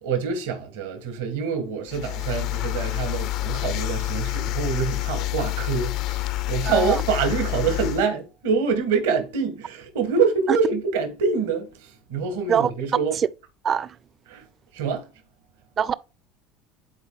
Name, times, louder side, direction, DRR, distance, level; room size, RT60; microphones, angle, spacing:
voice 1, 0.0-11.7 12.1-13.1 14.3-14.4 14.7-15.0, right 5 dB, 80° right, 1.5 m, -25 dB
sound 1, 1.9-8.0, left 16 dB, 60° left, 0.5 m, -28 dB
voice 2, 6.7-7.0 10.5-10.6 12.5-12.7 13.1-13.3 13.6-14.0 15.8-15.9, right 8 dB, 40° right, 0.4 m, -23 dB
11.0 x 4.1 x 2.3 m
hypercardioid pair, 80°, 0 cm